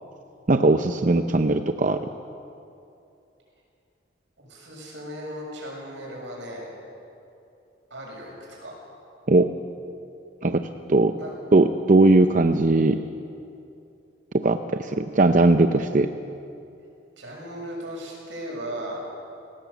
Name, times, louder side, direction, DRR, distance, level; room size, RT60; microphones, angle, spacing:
voice 1, 0.5-2.0 9.3-9.5 10.4-11.2 11.5-13.0 14.3-16.1, right 2 dB, 45° right, 8 dB, 0.6 m, -19 dB
voice 2, 4.4-6.8 7.9-8.3 8.6-8.8 11.2-11.3 17.2-19.1, equal, 90° right, -2 dB, 6.6 m, -36 dB
18.5 x 17.5 x 8.3 m, 2.7 s
head